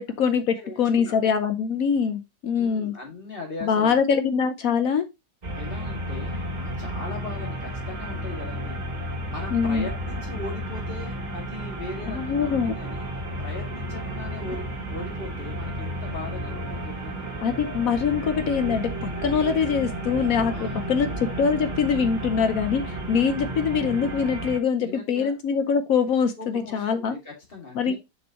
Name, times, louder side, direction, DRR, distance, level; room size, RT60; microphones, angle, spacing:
voice 1, 0.0-2.9 3.6-5.0 9.5-9.9 12.1-12.7 17.4-27.2 27.8-28.0, left 6 dB, 70° left, 9 dB, 1.1 m, -24 dB
voice 2, 0.6-1.1 2.6-4.2 5.5-8.8 9.3-13.1 13.4-17.3 20.5-21.1 24.8-25.3 26.4-28.0, left 3 dB, 35° left, 0 dB, 2.4 m, -39 dB
sound 1, 5.4-24.6, right 1 dB, 30° right, 1.4 m, -32 dB
6.5 x 5.4 x 2.9 m, 0.23 s
omnidirectional pair, 1.6 m